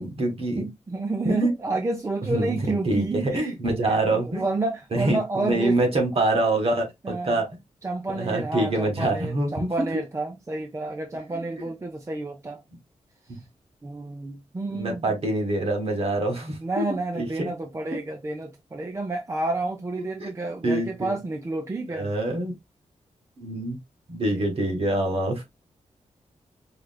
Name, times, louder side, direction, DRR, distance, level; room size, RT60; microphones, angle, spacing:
voice 1, 0.0-0.6 1.3-1.5 2.3-4.4 4.9-7.5 8.1-9.7 11.3-11.4 13.3-13.4 14.7-16.8 17.1-17.5 20.2-20.3 20.6-21.1 21.9-22.5 23.4-23.8 24.1-25.4, right 2 dB, 50° right, 1.7 m, -25 dB
voice 2, 0.6-3.6 3.8-5.8 6.1-6.2 7.0-7.4 7.8-12.6 13.3-13.4 13.8-15.1 16.6-22.1 24.3-24.5, right 2 dB, 25° right, 0.6 m, -30 dB
4.9 x 3.1 x 2.3 m
wide cardioid pair, 155°, 12 cm